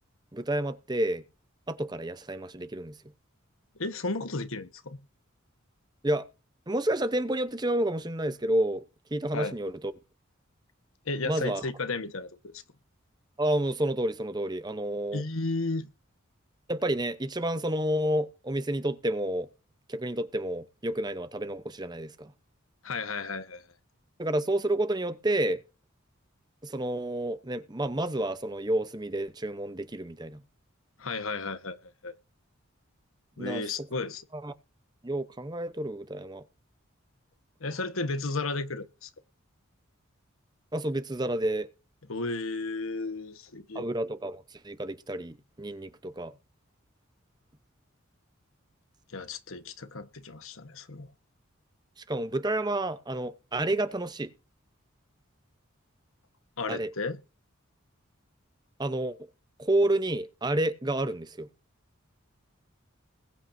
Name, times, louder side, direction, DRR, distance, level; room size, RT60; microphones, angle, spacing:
voice 1, 0.3-1.2 1.7-2.9 6.0-6.3 6.7-9.9 11.2-11.7 13.4-15.2 16.7-19.5 19.9-22.3 24.2-25.6 26.6-30.4 33.4-33.7 34.3-34.5 35.0-36.4 40.7-41.7 43.7-46.3 52.0-54.3 56.7-56.9 58.8-59.2 59.6-61.5, right 1 dB, 20° right, 0.8 m, -30 dB
voice 2, 3.8-5.0 9.3-9.5 11.1-12.6 15.1-15.9 22.8-23.6 31.0-31.8 32.0-32.1 33.4-34.2 37.6-39.1 42.1-43.9 49.1-51.1 56.6-57.2, left 3 dB, 75° left, 1.3 m, -33 dB
21.0 x 8.7 x 2.7 m
head